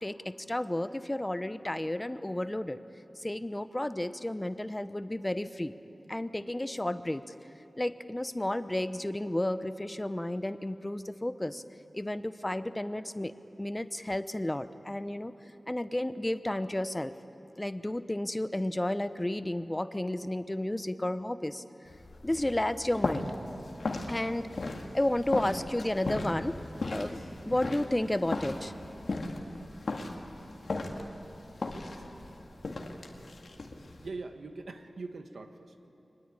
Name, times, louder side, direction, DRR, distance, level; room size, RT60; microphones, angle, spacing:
voice 1, 0.0-2.8 3.2-5.7 6.1-7.2 7.8-11.6 11.9-13.3 13.6-15.3 15.7-17.1 17.6-21.6 22.2-23.3 24.1-24.5 24.9-26.6 26.9-28.7, left 1 dB, 20° left, 12 dB, 0.8 m, -32 dB
sound 1, 21.9-34.1, left 2 dB, 70° left, 2.0 m, -37 dB
voice 2, 34.0-35.9, right 3 dB, 80° right, 7 dB, 1.3 m, -42 dB
24.5 x 20.0 x 8.8 m, 2.9 s
wide cardioid pair, 55°, 0 cm